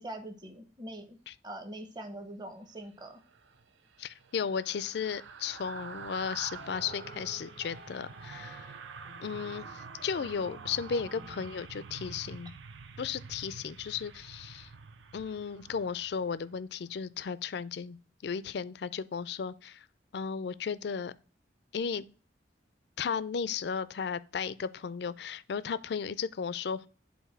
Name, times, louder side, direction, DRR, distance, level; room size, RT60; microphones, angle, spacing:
voice 1, 0.0-1.2 1.4-3.2, right 1 dB, 25° right, 0.9 m, -43 dB
sound 1, 3.2-16.6 16.9-17.1, right 5 dB, 85° right, 0.6 m, -47 dB
voice 2, 4.0-8.7 9.2-12.5 13.0-14.7 15.1-18.0 18.2-19.8 20.1-21.1 21.7-22.0 23.0-26.9, left 6 dB, 60° left, 0.4 m, -35 dB
sound 2, 6.5-12.2, right 2 dB, 50° right, 1.1 m, -52 dB
8.0 x 2.7 x 5.8 m
head